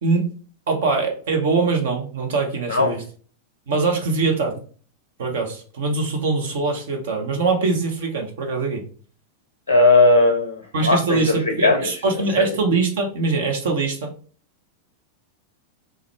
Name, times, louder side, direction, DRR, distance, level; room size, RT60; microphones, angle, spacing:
voice 1, 0.0-0.3 0.7-3.0 3.7-4.6 5.2-8.8 10.7-14.1, right 4 dB, 60° right, 2 dB, 0.7 m, -22 dB
voice 2, 9.7-11.3 11.6-11.9 12.4-12.5, left 2 dB, 70° left, 1 dB, 0.6 m, -17 dB
3.6 x 2.2 x 3.1 m, 0.41 s
figure-of-eight pair, 90°, 0 cm